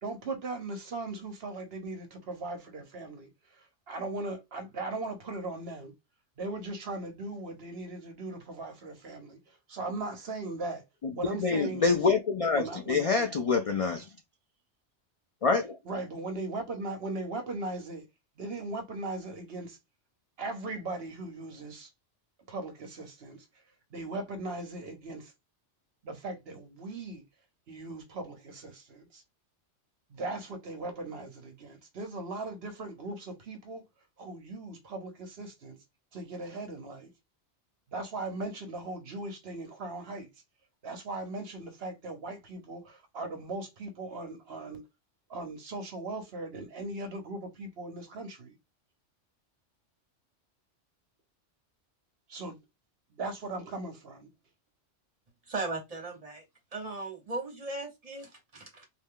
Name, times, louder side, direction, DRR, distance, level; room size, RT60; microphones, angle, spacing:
voice 1, 0.0-5.9 6.4-9.4 9.7-10.8 11.1-12.0 12.5-13.3 15.8-18.0 18.4-19.8 20.4-21.9 22.5-23.5 23.9-25.3 26.0-27.2 27.7-29.2 30.1-33.8 34.2-35.8 36.1-37.1 37.9-40.3 40.8-44.8 45.3-48.6 52.3-52.6 53.1-54.3, right 2 dB, 60° right, 1.0 m, -38 dB
voice 2, 11.4-14.1 15.4-15.8, left 4 dB, 60° left, 0.3 m, -26 dB
voice 3, 55.5-56.4 56.7-58.9, right 3 dB, 30° right, 1.2 m, -37 dB
3.2 x 2.6 x 3.5 m
omnidirectional pair, 1.2 m